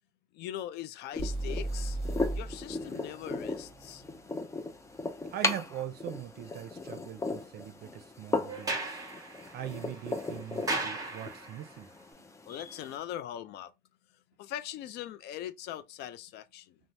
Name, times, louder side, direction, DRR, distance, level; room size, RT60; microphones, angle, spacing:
voice 1, 0.3-2.0 2.3-4.0 12.5-13.7 14.4-16.8, left 11 dB, 75° left, 0.4 m, -41 dB
sound 1, 1.1-13.0, left 3 dB, 15° left, 0.4 m, -37 dB
sound 2, 1.2-5.1, right 2 dB, 35° left, 1.1 m, -37 dB
voice 2, 5.3-8.8 9.5-11.9, right 11 dB, 65° right, 0.5 m, -41 dB
Sliding door, 8.5-11.7, right 2 dB, 20° right, 1.0 m, -37 dB
3.1 x 2.0 x 2.6 m
cardioid pair, 110°, 17 cm